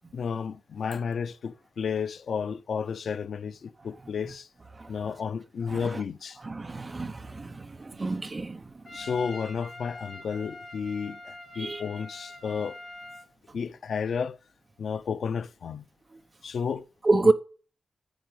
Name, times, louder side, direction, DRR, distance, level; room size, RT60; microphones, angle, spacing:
voice 1, 0.1-4.5 4.9-6.4 8.9-12.8 13.5-14.4 14.8-15.9 16.4-16.8 17.2-17.3, left 6 dB, 85° left, 0.6 m, -32 dB
voice 2, 5.7-6.0 6.4-8.6 11.6-11.8 17.0-17.3, right 3 dB, 30° right, 1.0 m, -27 dB
Trumpet, 8.8-13.3, left 2 dB, 45° left, 5.0 m, -44 dB
10.5 x 8.0 x 7.9 m
wide cardioid pair, 165°, 0 cm